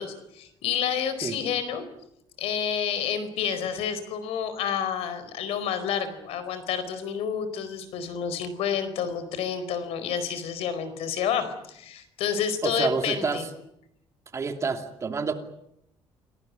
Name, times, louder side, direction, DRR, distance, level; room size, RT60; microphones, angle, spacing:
voice 1, 0.0-1.8 2.4-13.4, left 7 dB, 80° left, 12 dB, 4.5 m, -29 dB
voice 2, 12.6-13.5 14.3-15.3, right 5 dB, 30° right, 6 dB, 2.7 m, -28 dB
28.0 x 18.5 x 9.6 m, 0.77 s
cardioid pair, 140°, 10 cm